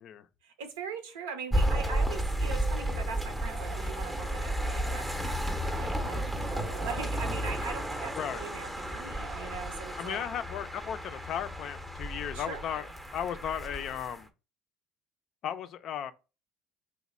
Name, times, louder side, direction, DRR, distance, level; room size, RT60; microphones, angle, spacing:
voice 1, 0.4-10.3 12.3-12.9, right 5 dB, 90° right, 0.7 m, -41 dB
sound 1, 1.5-14.2, right 1 dB, 5° right, 0.6 m, -33 dB
Bird, 3.4-10.8, right 7 dB, 55° right, 0.4 m, -49 dB
voice 2, 10.0-12.8 13.1-14.3 15.4-16.1, left 9 dB, 55° left, 0.4 m, -35 dB
3.1 x 2.1 x 4.1 m
supercardioid pair, 80°, 0 cm